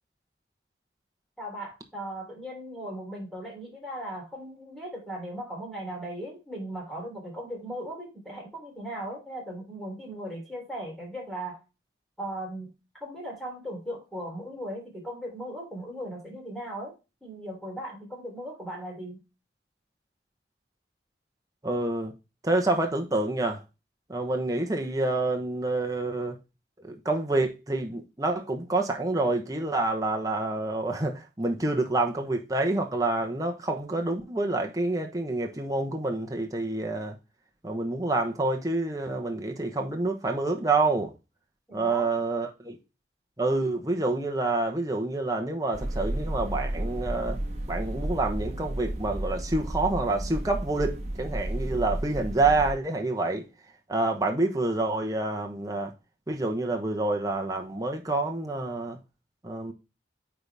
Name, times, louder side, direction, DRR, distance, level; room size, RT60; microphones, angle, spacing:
voice 1, 1.4-11.6 12.2-12.7 13.0-16.9 17.2-19.2 41.7-42.1, right 1 dB, ahead, 3.4 m, -38 dB
voice 2, 21.6-22.1 22.4-23.6 24.1-26.4 26.8-37.2 37.6-41.1 41.7-42.8 43.4-47.4 47.7-53.5 53.9-55.9 56.3-59.0 59.4-59.7, right 2 dB, 20° right, 1.0 m, -27 dB
sound 1, 45.7-52.7, right 1 dB, 40° right, 1.4 m, -32 dB
8.8 x 4.2 x 3.4 m
head